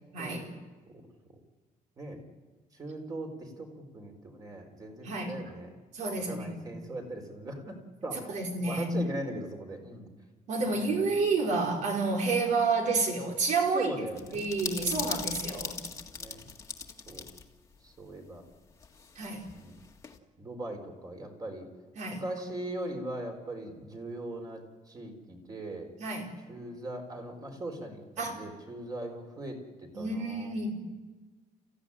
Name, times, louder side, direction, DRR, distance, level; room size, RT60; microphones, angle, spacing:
voice 1, 0.1-0.5 5.0-5.3 5.9-6.7 8.3-9.0 10.5-13.9 14.3-15.7 19.1-19.4 22.0-22.2 26.0-26.3 28.2-28.4 29.9-30.8, right 3 dB, 60° right, 2 dB, 4.9 m, -30 dB
voice 2, 2.7-5.7 6.3-8.3 8.6-10.1 10.6-11.1 13.7-14.5 14.7-15.1 16.2-16.4 17.1-17.3 17.8-18.4 19.5-19.8 20.4-21.7 22.1-25.9 26.5-30.5, right 1 dB, 25° right, 4 dB, 4.2 m, -40 dB
sound 1, 14.2-17.4 17.7-17.8 18.8-20.2, left 5 dB, 20° left, 1.8 m, -39 dB
30.0 x 15.5 x 10.0 m, 1.3 s
cardioid pair, 160°, 14 cm